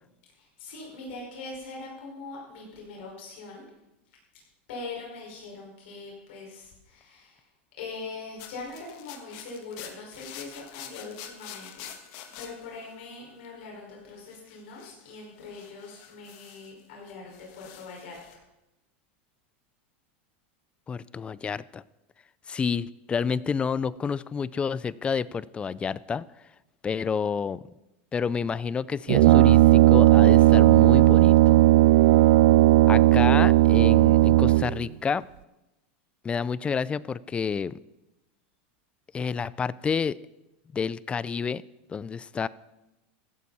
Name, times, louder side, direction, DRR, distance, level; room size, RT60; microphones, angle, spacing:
voice 1, 0.4-3.7 4.7-7.5 7.8-11.9 12.4-18.4, left 3 dB, 70° left, -2 dB, 5.4 m, -42 dB
sound 1, 8.4-13.6 14.3-16.8 17.1-18.3, left 9 dB, 55° left, 1.7 m, -47 dB
voice 2, 20.9-21.8 22.5-26.2 26.8-27.7 28.1-31.6 32.9-35.3 36.2-37.8 39.1-40.2 40.7-41.6 41.9-42.5, left 6 dB, 15° left, 20 dB, 0.4 m, -29 dB
Brass instrument, 29.1-34.9, right 17 dB, 70° right, 0.3 m, -16 dB
15.5 x 12.0 x 4.3 m, 0.96 s
supercardioid pair, 130°, 6 cm